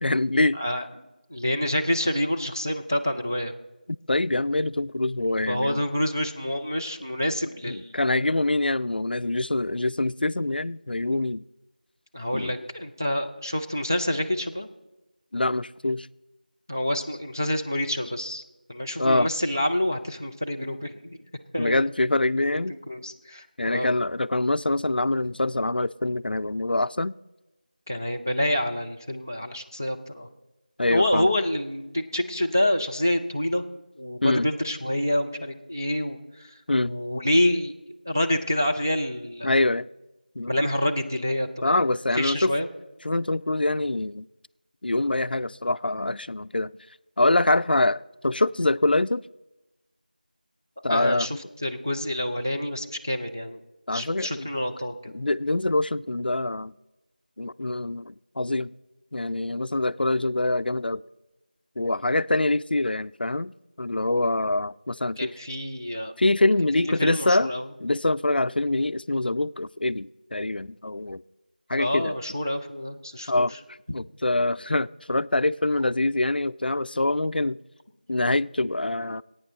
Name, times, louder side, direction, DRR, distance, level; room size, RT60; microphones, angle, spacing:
voice 1, 0.0-0.6 4.1-5.8 7.7-11.4 12.3-12.5 15.3-16.1 19.0-19.3 21.6-22.7 23.6-27.1 30.8-31.3 34.2-34.5 36.7-36.9 39.4-39.9 40.4-40.6 41.6-42.5 43.0-44.3 44.8-46.7 47.2-49.2 50.8-51.4 53.9-54.5 55.1-56.7 57.4-58.7 59.1-61.0 61.8-65.3 66.2-67.5 67.8-71.2 71.7-72.1 73.3-73.5 73.9-77.6 78.1-79.2, left 2 dB, 90° left, 16 dB, 0.3 m, -25 dB
voice 2, 0.6-3.5 5.5-8.4 12.1-14.7 16.7-18.4 18.7-21.2 21.5-21.9 22.5-23.9 27.9-30.3 30.9-33.6 34.0-36.5 36.8-37.7 38.1-39.6 40.5-41.8 42.1-42.7 50.9-53.6 53.9-55.1 65.2-66.1 66.8-67.7 71.8-73.5, left 1 dB, 20° right, 3 dB, 0.4 m, -27 dB
16.0 x 8.9 x 3.9 m, 1.0 s
figure-of-eight pair, 180°, 5 cm